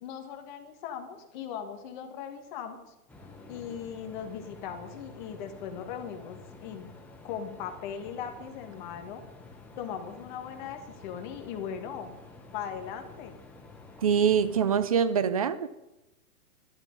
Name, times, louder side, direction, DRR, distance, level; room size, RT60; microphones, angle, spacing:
voice 1, 0.0-2.8 3.5-6.9 7.2-9.2 9.8-12.1 12.5-13.4, left 8 dB, 30° left, 5 dB, 1.9 m, -39 dB
sound 1, 3.1-14.9, left 3 dB, 5° left, 1.0 m, -50 dB
voice 2, 14.0-15.7, right 7 dB, 25° right, 15 dB, 0.5 m, -24 dB
14.0 x 12.5 x 5.3 m, 0.96 s
hypercardioid pair, 155°, 45 cm